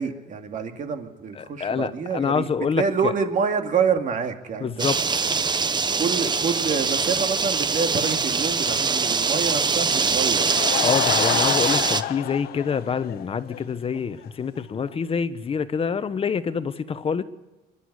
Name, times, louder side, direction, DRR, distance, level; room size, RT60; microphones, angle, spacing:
voice 1, 0.0-2.5 2.7-4.9 5.9-10.5, right 6 dB, 50° right, 5 dB, 2.4 m, -27 dB
voice 2, 1.3-3.1 4.6-5.0 10.8-17.2, left 6 dB, 35° left, 12 dB, 1.1 m, -26 dB
sound 1, 4.8-12.0, right 5 dB, 25° right, 0.9 m, -23 dB
Laughter / Crowd, 10.2-13.6 14.0-14.1 14.6-14.7 14.9-15.0, left 14 dB, 65° left, 0.6 m, -28 dB
23.5 x 11.5 x 9.9 m, 1.1 s
cardioid pair, 110°, 17 cm